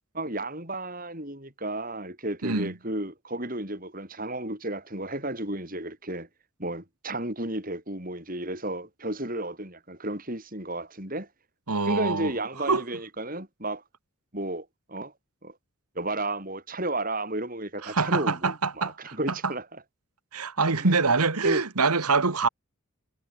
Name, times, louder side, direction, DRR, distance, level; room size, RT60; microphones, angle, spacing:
voice 1, 0.1-6.3 6.6-11.3 11.9-13.8 14.3-15.1 15.4-15.5 16.0-19.7 20.8-20.9 21.4-21.6, right 1 dB, 40° right, 7.2 m, -33 dB
voice 2, 2.4-2.7 11.7-12.3 12.7-12.8 17.8-19.2 20.3-22.5, right 4 dB, 90° right, 1.9 m, -25 dB
head